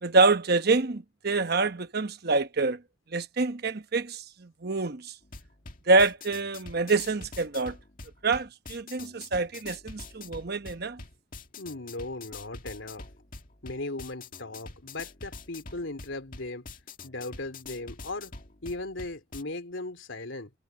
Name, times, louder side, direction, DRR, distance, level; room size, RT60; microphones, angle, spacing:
voice 1, 0.0-2.8 3.1-5.1 5.9-7.8 8.2-11.0, right 3 dB, 50° right, 1.0 m, -26 dB
sound 1, 5.2-19.4, left 3 dB, 45° left, 2.0 m, -45 dB
voice 2, 11.6-13.1 13.6-16.7 17.0-18.3 18.6-20.5, left 2 dB, 75° left, 3.2 m, -37 dB
head